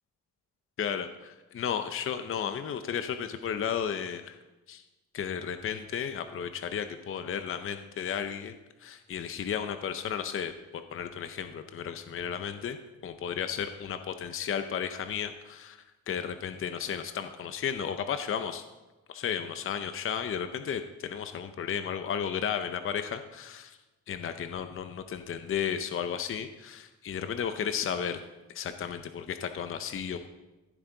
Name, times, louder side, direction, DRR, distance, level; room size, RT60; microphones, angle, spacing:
voice 1, 0.8-4.4 4.7-4.8 5.1-8.5 8.8-12.8 13.0-15.8 16.1-18.6 19.1-23.8 24.1-28.2 28.5-30.3, left 8 dB, 40° left, 9 dB, 0.6 m, -33 dB
15.0 x 7.9 x 3.9 m, 1.1 s
cardioid pair, 120°, 32 cm